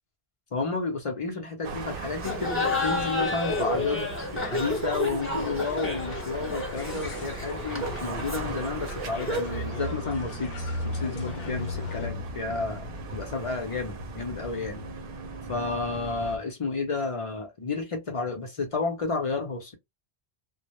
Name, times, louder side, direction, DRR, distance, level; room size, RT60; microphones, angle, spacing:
voice 1, 0.5-14.8 15.5-19.7, left 4 dB, 45° left, 0.5 m, -31 dB
sound 1, 1.6-16.4, right 1 dB, 65° right, 0.7 m, -37 dB
Laughter, 2.2-9.6, left 2 dB, 15° left, 0.7 m, -31 dB
sound 2, 5.0-12.1, left 6 dB, 70° left, 0.8 m, -43 dB
2.1 x 2.0 x 2.9 m
omnidirectional pair, 1.1 m